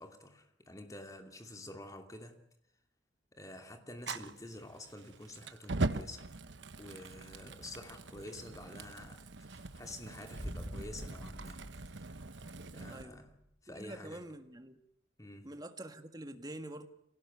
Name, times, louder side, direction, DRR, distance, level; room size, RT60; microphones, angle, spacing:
voice 1, 0.0-2.4 3.3-6.3 6.8-12.0 12.7-13.4 13.6-14.2 15.2-15.5, left 1 dB, 20° left, 2.8 m, -49 dB
Fire, 4.0-13.0, right 2 dB, 75° right, 1.2 m, -41 dB
Boom, 10.3-13.3, equal, 5° right, 2.6 m, -46 dB
voice 2, 12.9-13.2 13.7-14.8 15.4-16.9, right 1 dB, 20° right, 1.8 m, -46 dB
26.0 x 18.0 x 9.6 m
head